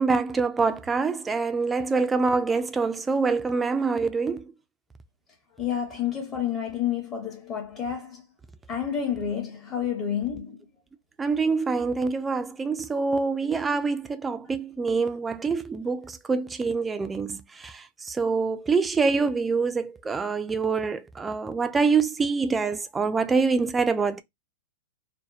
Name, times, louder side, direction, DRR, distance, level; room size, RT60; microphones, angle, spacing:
voice 1, 0.0-4.4 11.2-24.2, right 4 dB, 15° right, 0.3 m, -25 dB
voice 2, 5.6-8.2 8.7-10.6, left 8 dB, 35° left, 0.8 m, -29 dB
2.7 x 2.0 x 2.3 m
hypercardioid pair, 125°, 0 cm